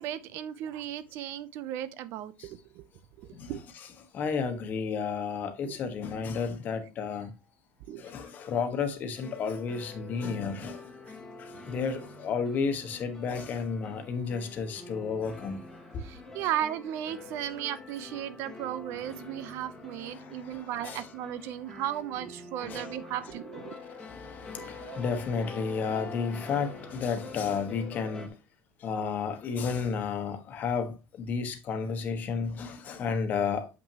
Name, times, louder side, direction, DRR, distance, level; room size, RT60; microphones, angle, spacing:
voice 1, 0.0-2.8 3.2-3.6 5.6-5.8 7.9-8.1 11.1-11.2 16.0-23.8 24.6-25.1, right 11 dB, 55° right, 0.6 m, -36 dB
voice 2, 3.3-3.9 4.1-7.3 8.0-10.9 11.4-15.6 15.9-16.0 16.4-16.5 20.0-21.1 22.6-22.8 23.7-28.4 28.8-33.7, left 5 dB, 35° left, 1.2 m, -32 dB
sound 1, 9.2-28.3, left 3 dB, 5° left, 1.4 m, -46 dB
7.4 x 5.9 x 2.9 m
cardioid pair, 160°, 5 cm